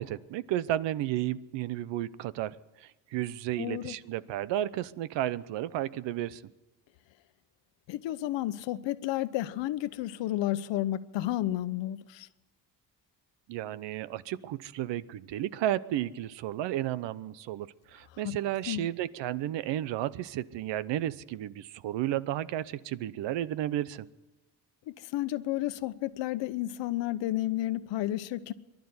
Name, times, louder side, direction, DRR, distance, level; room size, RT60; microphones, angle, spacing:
voice 1, 0.0-2.6 2.8-6.4 13.5-24.1, right 13 dB, 80° right, 0.9 m, -33 dB
voice 2, 3.6-4.0 7.9-12.3 18.2-18.4 18.7-18.9 24.9-28.5, left 14 dB, 85° left, 1.0 m, -32 dB
23.5 x 12.0 x 9.6 m
cardioid pair, 155°, 43 cm